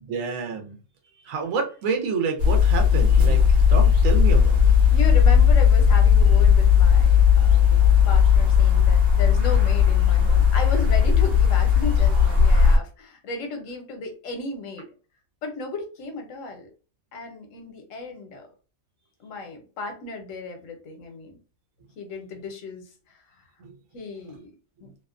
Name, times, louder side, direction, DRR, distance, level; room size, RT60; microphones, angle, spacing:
voice 1, 0.1-0.7 1.2-4.7 23.6-23.7 24.3-24.4, right 5 dB, 75° right, 4 dB, 1.0 m, -29 dB
sound 1, 2.4-12.8, left 7 dB, 55° right, 1.0 m, -16 dB
voice 2, 4.9-14.9 15.4-16.7 17.1-18.5 19.2-21.4 22.0-23.4 23.9-24.5 24.8-24.9, left 3 dB, 70° left, 4 dB, 1.1 m, -35 dB
2.7 x 2.1 x 2.4 m, 0.35 s
omnidirectional pair, 1.4 m